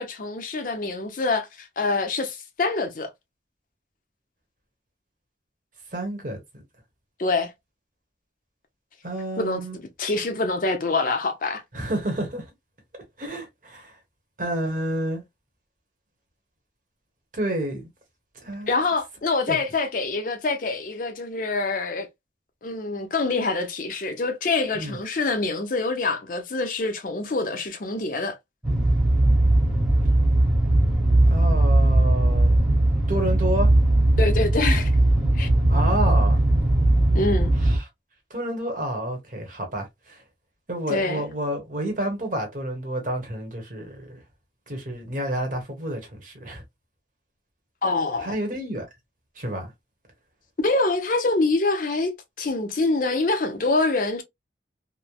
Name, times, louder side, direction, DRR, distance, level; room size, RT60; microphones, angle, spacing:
voice 1, 0.0-3.1 7.2-7.5 9.4-9.6 10.0-11.6 18.7-22.1 22.6-28.4 34.2-34.9 35.3-35.5 37.1-37.5 40.9-41.2 47.8-48.3 50.6-54.2, left 3 dB, 50° left, 0.5 m, -25 dB
voice 2, 5.9-6.4 9.0-9.8 11.7-12.5 13.2-14.0 14.4-15.2 17.3-17.9 18.4-18.7 19.5-19.6 24.7-25.0 31.3-32.5 33.1-33.7 35.7-36.4 37.6-37.9 38.3-40.2 40.7-44.2 44.7-46.6 48.2-48.9 49.4-49.7, right 1 dB, 45° right, 1.0 m, -29 dB
sound 1, 28.6-37.8, right 1 dB, 5° right, 0.9 m, -19 dB
3.1 x 2.0 x 2.2 m
head